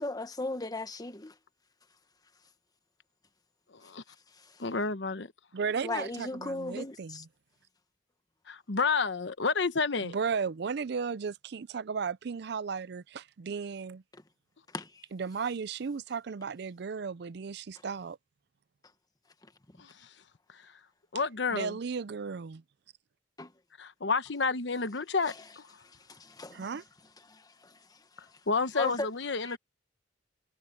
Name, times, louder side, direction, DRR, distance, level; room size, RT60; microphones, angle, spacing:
voice 1, 0.0-1.4 4.3-4.6 5.8-7.2 14.1-14.2 14.7-15.1 19.4-19.5 23.4-23.5 25.2-25.5 25.8-26.8 27.2-28.4 28.7-29.1 29.4-29.6, left 2 dB, 20° left, 1.3 m, -38 dB
voice 2, 4.6-5.3 8.5-10.2 19.8-19.9 21.1-21.8 23.8-25.7 28.5-29.6, left 4 dB, 80° left, 1.1 m, -30 dB
voice 3, 5.5-7.2 10.0-14.0 15.1-18.2 21.5-22.6 26.5-26.8, right 5 dB, 65° right, 0.5 m, -35 dB
head